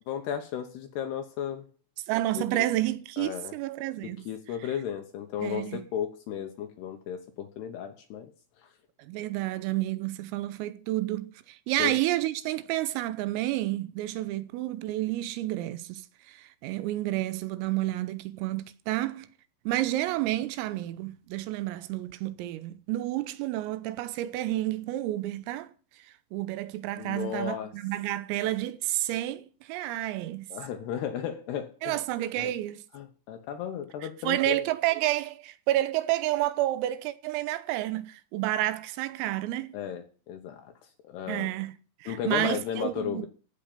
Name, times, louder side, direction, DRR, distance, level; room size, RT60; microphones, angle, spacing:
voice 1, 0.1-1.6 2.3-2.7 3.2-3.5 4.0-8.3 11.8-11.9 27.0-27.7 30.5-32.0 32.4-32.5 32.9-34.6 39.7-40.7 41.0-41.5 42.1-43.3, left 9 dB, 70° left, 2.6 m, -34 dB
voice 2, 2.1-4.3 5.4-5.8 9.0-19.3 19.7-25.7 26.0-30.5 31.8-32.8 34.3-39.8 41.3-43.3, right 15 dB, 90° right, 3.6 m, -30 dB
15.5 x 6.4 x 8.9 m
omnidirectional pair, 5.9 m